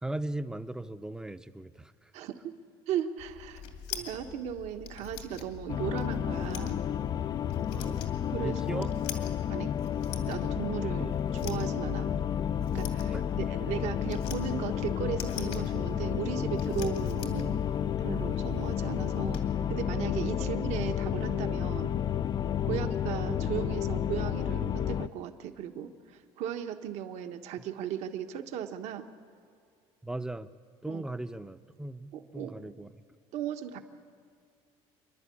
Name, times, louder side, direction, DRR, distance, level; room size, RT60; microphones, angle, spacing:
voice 1, 0.0-2.1 7.7-8.1 8.4-8.9 13.1-13.2 20.4-20.5 22.6-22.9 30.0-30.5 30.8-32.9, right 1 dB, 5° right, 12 dB, 0.6 m, -38 dB
voice 2, 2.1-2.6 2.9-3.6 3.9-6.8 8.3-8.9 9.5-9.7 10.2-12.2 12.7-17.7 18.0-19.4 19.7-21.9 22.6-29.1 30.9-31.0 32.1-32.7 33.3-33.8, right 9 dB, 65° right, 7 dB, 1.3 m, -36 dB
turning lock on a door handle, 3.2-19.4, left 8 dB, 80° left, 2.5 m, -45 dB
sound 1, 5.7-25.1, left 9 dB, 35° left, 0.4 m, -31 dB
27.5 x 11.0 x 8.5 m, 2.3 s
cardioid pair, 115°, 12 cm